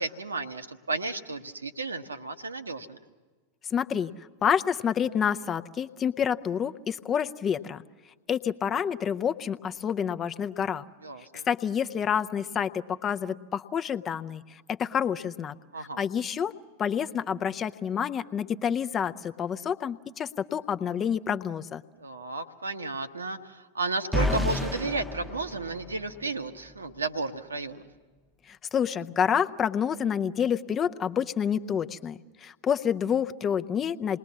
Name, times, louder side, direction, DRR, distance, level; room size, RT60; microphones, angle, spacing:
voice 1, 0.0-3.0 11.0-11.5 15.7-16.0 22.0-27.8, right 3 dB, 75° right, 8 dB, 1.0 m, -33 dB
voice 2, 3.7-4.1 4.4-7.8 8.3-10.8 11.5-16.5 16.8-21.8 28.5-34.2, left 8 dB, 25° left, 10 dB, 0.6 m, -28 dB
sound 1, 24.1-26.3, left 2 dB, ahead, 0.9 m, -30 dB
28.0 x 20.5 x 7.2 m, 1.3 s
figure-of-eight pair, 90°, 0 cm